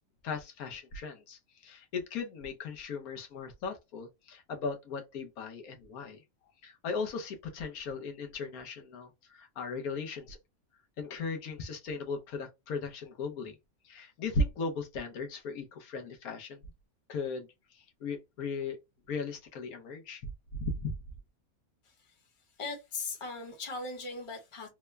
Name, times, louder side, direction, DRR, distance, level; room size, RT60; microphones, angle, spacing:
voice 1, 0.2-6.2 6.6-10.4 11.0-13.6 13.8-16.6 17.1-18.8 19.1-20.9, left 3 dB, 80° left, 1.3 m, -37 dB
voice 2, 21.8-22.2 22.6-24.7, left 3 dB, 25° left, 0.9 m, -39 dB
3.5 x 2.1 x 3.2 m
omnidirectional pair, 1.5 m